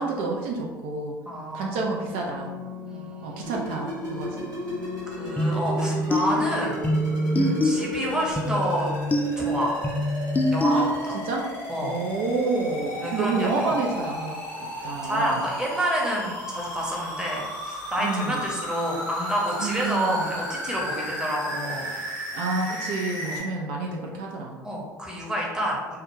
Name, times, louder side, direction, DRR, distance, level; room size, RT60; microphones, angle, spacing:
voice 1, 0.0-1.2 1.5-2.5 3.2-4.5 7.4-7.9 10.7-10.9 11.2-11.5 11.8-15.5 18.0-18.5 19.6-20.4 22.3-24.6, right 3 dB, 65° right, 0 dB, 0.4 m, -29 dB
voice 2, 1.2-2.0 2.8-3.6 5.1-6.8 7.6-8.9 9.4-9.7 10.5-11.2 11.7-12.0 13.0-13.8 15.0-21.9 23.2-23.4 24.6-26.0, equal, 5° right, -3 dB, 0.8 m, -29 dB
sound 1, 2.1-8.3, left 3 dB, 35° right, 1.1 m, -40 dB
sound 2, 3.4-23.4, equal, 85° right, 1.0 m, -34 dB
sound 3, 5.4-11.3, equal, 15° left, 0.3 m, -25 dB
2.2 x 2.1 x 3.0 m, 1.3 s
hypercardioid pair, 65°, 10 cm